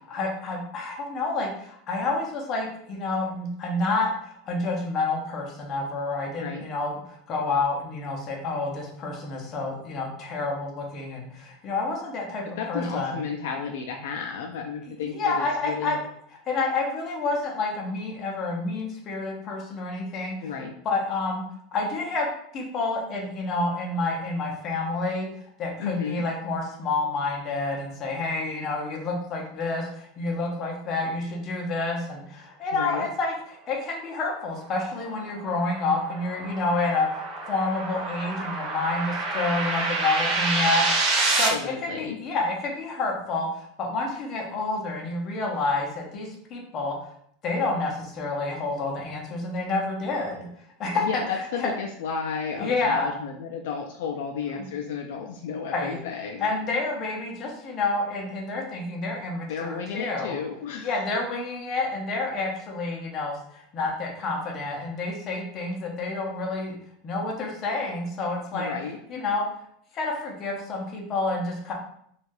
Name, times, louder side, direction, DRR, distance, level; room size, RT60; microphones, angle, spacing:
voice 1, 0.1-12.4 12.7-13.2 15.1-16.0 16.5-20.5 20.8-21.4 21.7-22.3 22.5-25.3 25.6-47.0 47.4-50.5 50.8-51.2 51.6-51.7 52.5-53.1 54.5-54.7 55.7-56.0 56.4-60.4 60.8-66.8 67.0-68.7 69.1-69.5 69.9-71.7, left 3 dB, 25° left, 0 dB, 0.5 m, -29 dB
voice 2, 6.3-6.6 12.6-16.0 20.4-20.7 25.8-26.2 32.7-33.1 41.5-42.2 51.0-56.6 59.5-61.0 68.5-69.3, left 6 dB, 80° left, 2 dB, 0.3 m, -33 dB
sound 1, 34.6-41.5, right 3 dB, 35° right, 0.5 m, -28 dB
3.2 x 2.3 x 2.5 m, 0.68 s
supercardioid pair, 170°, 0 cm